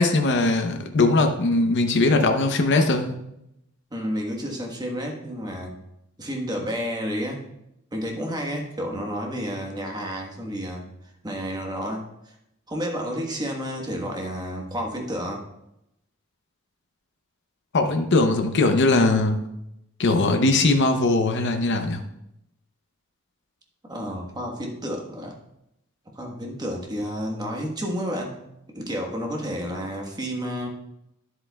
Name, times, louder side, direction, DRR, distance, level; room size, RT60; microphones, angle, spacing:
voice 1, 0.0-3.1 17.7-19.4 20.0-22.0, left 2 dB, 55° left, 5 dB, 0.7 m, -20 dB
voice 2, 3.9-5.7 6.2-7.4 7.9-10.8 11.2-12.1 12.7-15.4 23.8-25.3 26.1-28.4 28.7-30.7, equal, 20° right, 1 dB, 1.3 m, -30 dB
10.0 x 7.9 x 2.3 m, 0.82 s
head